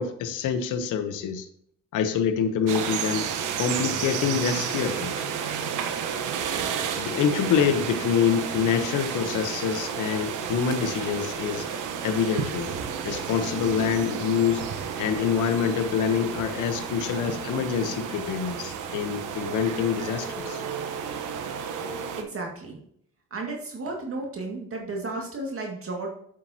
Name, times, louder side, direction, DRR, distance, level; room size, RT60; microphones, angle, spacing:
voice 1, 0.0-1.4 1.9-3.2 3.6-5.2 7.0-11.7 12.0-12.7 13.0-14.6 15.0-20.6, left 7 dB, 85° left, 7 dB, 1.0 m, -26 dB
sound 1, 2.7-22.2, right 7 dB, 85° right, 1.1 m, -32 dB
voice 2, 22.2-22.8 23.3-26.1, right 2 dB, 45° right, 1 dB, 2.0 m, -33 dB
8.5 x 7.5 x 2.8 m, 0.66 s
cardioid pair, 90°, 30 cm